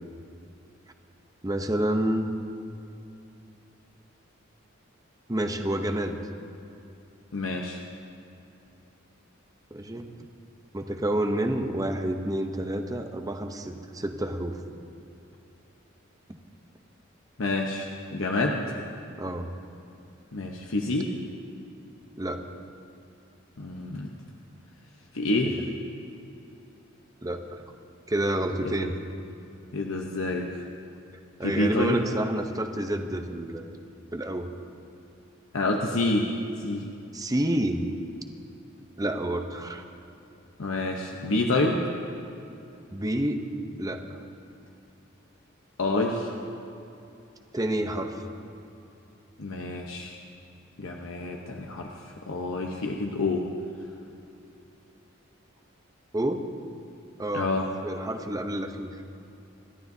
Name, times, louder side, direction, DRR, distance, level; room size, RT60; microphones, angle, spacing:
voice 1, 1.4-2.3 5.3-6.2 9.7-10.1 10.7-14.6 19.2-19.5 22.2-22.4 25.5-25.6 27.2-27.6 28.1-29.0 31.4-33.8 34.1-34.5 37.1-37.8 39.0-39.9 42.9-43.5 43.8-44.2 47.5-48.3 56.1-56.5 57.2-57.5 57.8-59.0, right 1 dB, 20° right, 6 dB, 0.7 m, -29 dB
voice 2, 7.3-7.8 17.4-18.8 20.3-21.1 23.6-24.1 25.1-25.5 28.6-28.9 29.7-30.5 31.4-32.0 35.5-36.3 36.6-36.8 40.6-41.8 45.8-46.3 49.4-50.2 50.8-51.9 52.3-53.5 57.3-57.7, left 2 dB, 80° left, 0 dB, 0.9 m, -28 dB
28.0 x 12.0 x 2.7 m, 2.7 s
head